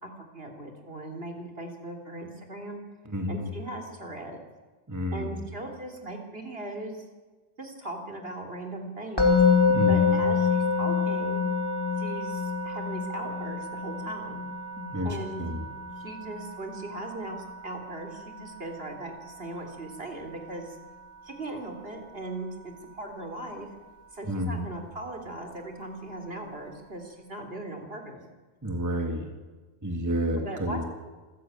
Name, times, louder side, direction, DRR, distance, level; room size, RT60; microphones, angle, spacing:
voice 1, 0.0-2.8 3.3-4.4 5.1-7.0 7.6-9.4 9.9-11.4 12.0-14.4 15.0-15.4 16.0-20.8 21.2-23.7 24.1-28.2 30.4-30.8, right 1 dB, 50° right, 4 dB, 3.6 m, -39 dB
voice 2, 3.1-3.4 4.9-5.4 9.7-10.2 14.8-15.6 24.3-24.7 28.6-29.3 29.8-30.8, equal, 15° right, 3 dB, 2.1 m, -30 dB
Musical instrument, 9.2-20.3, left 5 dB, 20° left, 2.8 m, -27 dB
26.5 x 15.0 x 9.0 m, 1.3 s
omnidirectional pair, 1.3 m